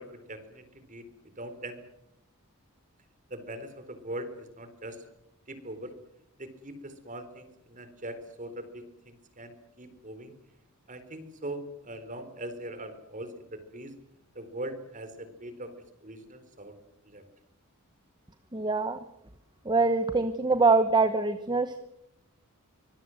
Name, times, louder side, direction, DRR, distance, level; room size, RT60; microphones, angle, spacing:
voice 1, 0.0-1.8 3.3-5.0 5.5-5.9 6.4-10.3 10.9-13.9 14.3-15.7 16.0-16.8 17.0-17.2, right 1 dB, 35° right, 10 dB, 4.0 m, -41 dB
voice 2, 18.5-19.0 19.7-21.8, right 3 dB, 20° right, 10 dB, 1.1 m, -24 dB
25.0 x 21.0 x 7.8 m, 0.82 s
head